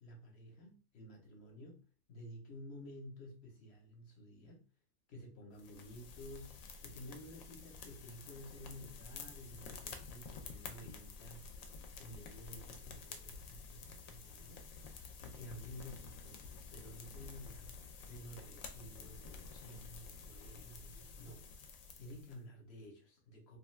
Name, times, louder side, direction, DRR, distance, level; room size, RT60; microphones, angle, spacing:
voice 1, 0.0-4.6 5.1-11.4 12.0-14.7 15.2-17.7 18.0-21.4 22.0-23.6, left 1 dB, 55° left, 1.0 m, -52 dB
sound 1, 5.6-22.4, left 5 dB, 80° left, 1.0 m, -51 dB
2.5 x 2.4 x 3.1 m
omnidirectional pair, 1.4 m